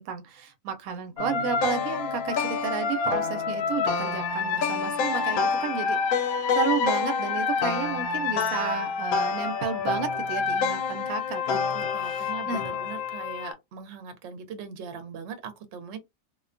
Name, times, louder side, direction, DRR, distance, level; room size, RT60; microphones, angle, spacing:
voice 1, 0.0-6.3 6.5-12.6, right 6 dB, 85° right, 1.0 m, -32 dB
sound 1, 1.2-13.5, left 5 dB, 90° left, 1.0 m, -27 dB
voice 2, 11.5-16.0, right 6 dB, 60° right, 0.9 m, -40 dB
2.5 x 2.2 x 2.4 m
omnidirectional pair, 1.4 m